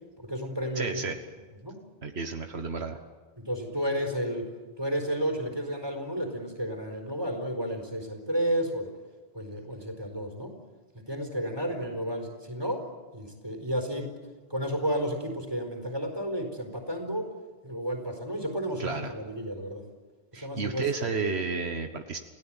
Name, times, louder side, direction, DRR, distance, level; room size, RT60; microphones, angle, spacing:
voice 1, 0.2-1.0 1.6-1.8 3.4-4.5 4.8-8.9 9.3-10.5 11.1-12.8 13.1-14.1 14.5-17.3 17.6-19.8 20.3-20.9, equal, 20° right, 4 dB, 4.4 m, -32 dB
voice 2, 0.7-1.2 2.0-3.0 18.8-19.1 20.3-22.2, right 4 dB, 80° right, 6 dB, 1.6 m, -32 dB
29.5 x 17.0 x 9.0 m, 1.3 s
omnidirectional pair, 1.1 m